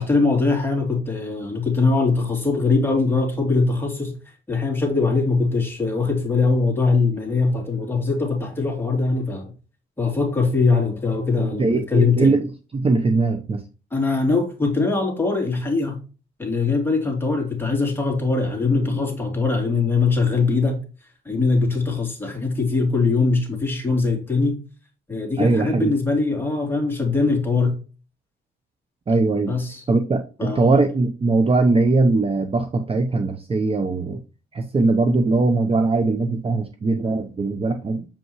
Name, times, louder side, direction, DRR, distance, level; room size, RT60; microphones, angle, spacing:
voice 1, 0.0-4.2 4.5-9.5 10.0-12.4 13.9-16.0 16.4-20.8 21.2-24.6 25.1-27.8 29.5-29.8 30.4-30.8, left 3 dB, 10° left, 1 dB, 2.8 m, -21 dB
voice 2, 11.4-12.5 12.7-13.6 25.4-25.9 29.1-29.6 29.9-34.2 34.5-38.1, right 3 dB, 30° right, 6 dB, 0.8 m, -20 dB
7.1 x 5.5 x 3.0 m, 0.34 s
cardioid pair, 90°, 20 cm